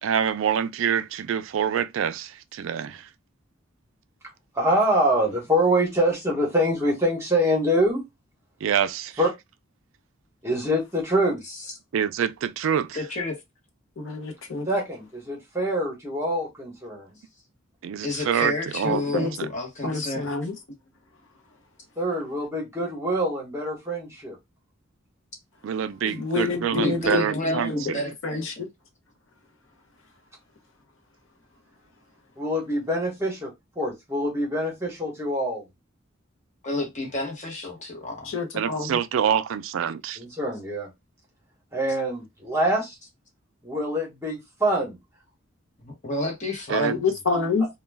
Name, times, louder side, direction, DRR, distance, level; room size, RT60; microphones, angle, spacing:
voice 1, 0.0-3.1 8.6-9.2 11.9-13.0 17.8-19.5 25.6-28.0 38.5-40.2 46.7-46.9, right 8 dB, 70° right, 0.3 m, -26 dB
voice 2, 4.5-8.0 9.2-9.3 10.4-11.4 14.7-17.1 22.0-24.4 32.4-33.5 33.8-35.6 40.2-40.9 41.7-42.9 43.6-45.0, equal, 15° right, 0.9 m, -25 dB
voice 3, 12.9-13.4 18.0-20.3 26.7-28.6 36.6-38.3 45.8-47.0, left 2 dB, 35° left, 0.9 m, -30 dB
voice 4, 14.0-14.7 18.8-19.5 19.8-20.5 26.0-27.8 28.2-28.7 38.2-38.9 47.0-47.7, left 4 dB, 65° left, 0.7 m, -28 dB
2.2 x 2.2 x 3.2 m
head